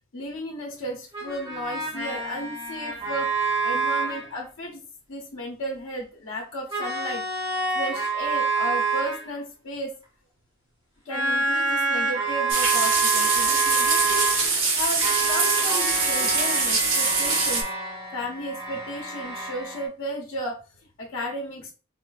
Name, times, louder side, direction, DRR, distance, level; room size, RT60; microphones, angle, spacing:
voice 1, 0.1-3.3 3.6-4.8 5.1-7.2 7.7-9.9 11.0-17.6 18.1-21.7, equal, 80° left, -2 dB, 0.7 m, -34 dB
sound 1, 1.1-4.3 6.7-9.3 11.1-14.5 14.8-19.9, right 3 dB, 25° right, 1.0 m, -27 dB
sound 2, 12.5-17.6, right 4 dB, 70° right, 0.9 m, -23 dB
4.4 x 2.4 x 2.3 m, 0.37 s
head